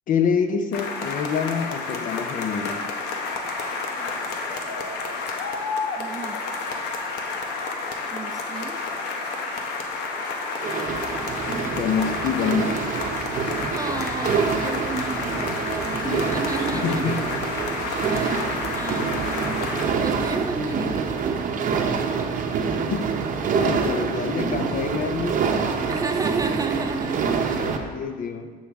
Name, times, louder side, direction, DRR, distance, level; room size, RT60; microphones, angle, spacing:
voice 1, 0.1-2.8 11.8-12.8 16.0-16.2 16.7-17.2 18.9-19.0 22.9-23.1 23.5-25.5 27.6-28.5, left 6 dB, 50° left, 8 dB, 0.6 m, -26 dB
sound 1, 0.7-19.8, left 4 dB, 85° left, 0.9 m, -30 dB
voice 2, 6.0-6.4 8.1-8.8 13.7-17.7 18.1-19.7 20.0-21.7 25.9-27.4, right 4 dB, 20° right, 7 dB, 0.4 m, -32 dB
sound 2, 10.6-27.8, right 5 dB, 50° right, 0.7 m, -26 dB
8.3 x 5.5 x 3.5 m, 1.5 s
cardioid pair, 110°, 17 cm